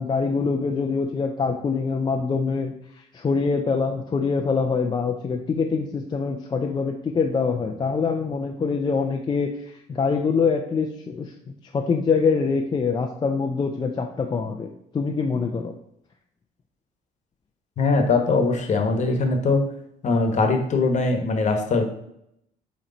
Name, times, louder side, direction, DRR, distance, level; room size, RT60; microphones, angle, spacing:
voice 1, 0.0-11.3 11.7-14.7 14.9-15.7, left 5 dB, 25° left, 3 dB, 0.5 m, -24 dB
voice 2, 17.8-19.6 20.0-21.9, left 3 dB, 45° left, 5 dB, 1.2 m, -21 dB
8.4 x 3.1 x 3.9 m, 0.77 s
cardioid pair, 110°, 17 cm